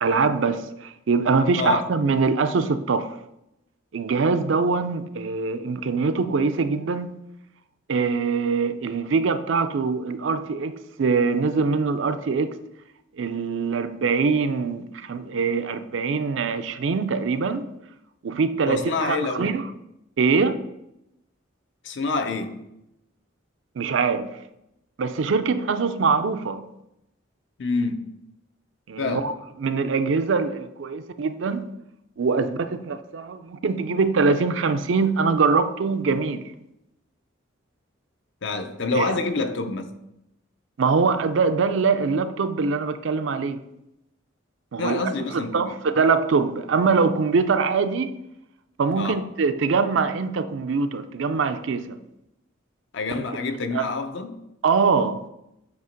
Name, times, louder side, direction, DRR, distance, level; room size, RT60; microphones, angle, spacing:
voice 1, 0.0-3.1 3.9-7.1 7.9-12.5 13.2-17.7 18.2-19.6 20.2-20.6 23.8-24.4 25.0-26.6 28.9-29.3 29.6-31.7 32.2-36.4 38.9-39.1 40.8-43.6 44.7-48.2 48.8-52.0 53.7-53.9 54.6-55.2, right 4 dB, 70° right, 0.4 m, -23 dB
voice 2, 1.6-1.9 18.7-19.5 21.8-22.7 27.6-28.1 29.0-29.3 38.4-39.9 44.8-45.7 49.0-49.3 52.9-54.5, left 3 dB, 65° left, 0.6 m, -27 dB
8.1 x 2.9 x 5.1 m
head